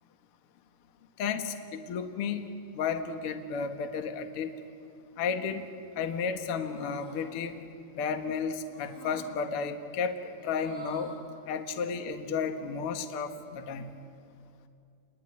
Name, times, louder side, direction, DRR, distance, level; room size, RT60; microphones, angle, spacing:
voice 1, 1.2-2.4 2.7-4.5 5.2-5.6 6.0-7.6 8.0-11.1 11.5-14.0, left 6 dB, 55° left, 7 dB, 1.6 m, -33 dB
sound 1, 5.2-5.7 6.5-7.2 8.7-9.3 10.3-11.2, right 2 dB, 15° right, 7.0 m, -47 dB
29.0 x 21.0 x 9.8 m, 2.5 s
omnidirectional pair, 4.6 m